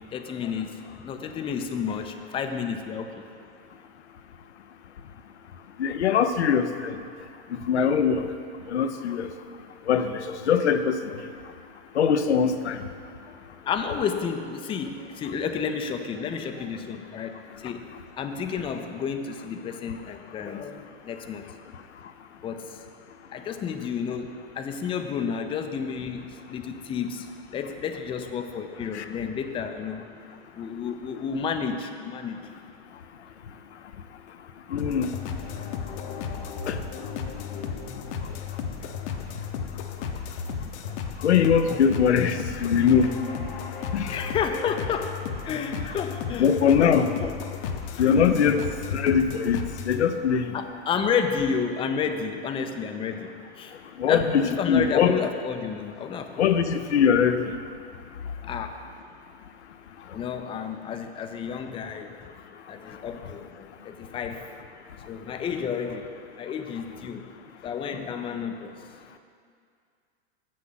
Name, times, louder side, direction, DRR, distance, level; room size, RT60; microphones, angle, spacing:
voice 1, 0.1-3.2 13.6-17.9 18.2-21.4 22.4-22.8 23.3-24.3 24.6-30.0 30.5-32.5 44.1-46.5 46.8-47.3 48.0-48.4 50.5-53.3 53.6-53.7 54.1-56.6 58.5-58.8 60.1-62.1 62.7-64.5 65.1-66.1 66.4-67.3 67.6-68.8, left 6 dB, 15° left, 6 dB, 0.5 m, -31 dB
voice 2, 5.8-7.0 7.5-8.3 8.7-9.3 9.9-11.0 11.9-12.8 28.9-29.0 34.7-35.2 36.7-36.8 41.2-43.1 43.9-44.2 46.4-47.1 48.0-48.6 48.9-50.5 54.0-55.1 56.4-57.5, left 7 dB, 85° left, 9 dB, 0.6 m, -22 dB
sound 1, 34.8-50.0, left 6 dB, 55° left, 0.8 m, -34 dB
7.4 x 6.2 x 5.7 m, 2.3 s
hypercardioid pair, 100°, 33 cm